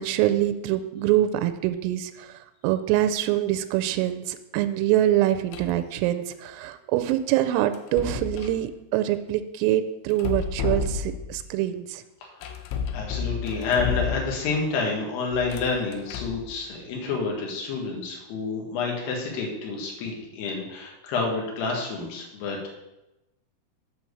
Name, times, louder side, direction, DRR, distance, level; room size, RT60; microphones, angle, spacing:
voice 1, 0.0-12.0, right 13 dB, 85° right, 10 dB, 3.2 m, -25 dB
sound 1, 5.5-5.8 7.7-8.6 10.1-11.4 12.4-14.6 15.3-16.5, left 6 dB, 80° left, 3.1 m, -31 dB
voice 2, 12.2-12.6 12.9-22.7, left 4 dB, 65° left, 0 dB, 3.2 m, -29 dB
8.1 x 4.5 x 6.9 m, 0.95 s
omnidirectional pair, 5.9 m